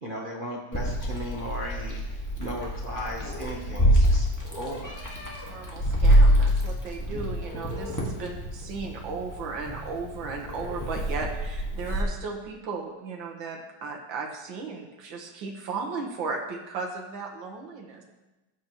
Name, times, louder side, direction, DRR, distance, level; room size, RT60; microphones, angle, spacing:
voice 1, 0.0-4.3 4.5-5.0, equal, 35° right, -3 dB, 0.9 m, -36 dB
Meow, 0.7-12.0, equal, 10° left, 1.5 m, -26 dB
voice 2, 5.5-18.0, right 4 dB, 65° right, 1 dB, 2.0 m, -36 dB
13.5 x 8.0 x 3.1 m, 1.1 s
omnidirectional pair, 2.3 m